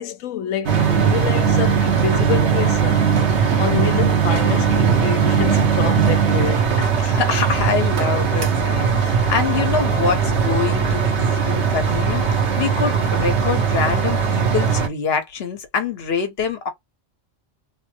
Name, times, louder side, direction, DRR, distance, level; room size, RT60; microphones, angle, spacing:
voice 1, 0.0-3.1 3.5-6.9, left 9 dB, 85° left, 1.0 m, -27 dB
sound 1, 0.7-14.9, right 6 dB, 65° right, 1.1 m, -19 dB
voice 2, 7.0-16.7, left 6 dB, 55° left, 1.1 m, -25 dB
3.4 x 2.1 x 2.8 m
omnidirectional pair, 1.3 m